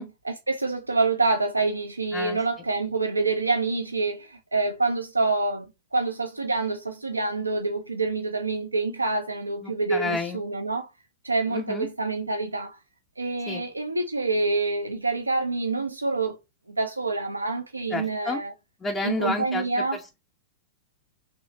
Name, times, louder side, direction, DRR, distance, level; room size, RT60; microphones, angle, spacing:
voice 1, 0.0-10.9 11.2-12.8 13.2-16.4 16.7-18.5 19.0-20.0, right 3 dB, 80° right, 0.4 m, -27 dB
voice 2, 9.6-10.4 11.5-11.9 13.5-13.6 17.9-18.4 18.8-20.2, left 3 dB, 20° left, 0.5 m, -31 dB
3.1 x 3.0 x 3.9 m
figure-of-eight pair, 100°, 0 cm